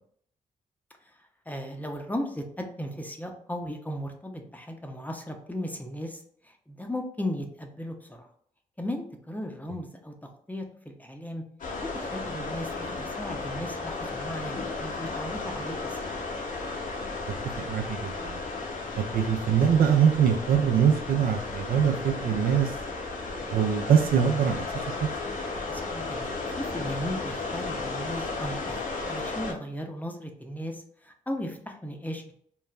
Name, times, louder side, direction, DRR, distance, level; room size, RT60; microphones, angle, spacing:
voice 1, 1.5-8.3 8.8-10.1 10.5-11.4 11.9-16.1 25.7-28.8 29.1-32.3, equal, 10° left, 3 dB, 0.6 m, -36 dB
sound 1, 11.6-29.5, left 3 dB, 55° left, 0.7 m, -34 dB
voice 2, 17.6-18.4 19.0-22.7 23.5-24.7 25.0-25.1, right 7 dB, 65° right, 5 dB, 0.4 m, -23 dB
3.2 x 2.0 x 2.3 m, 0.63 s
supercardioid pair, 45°, 16 cm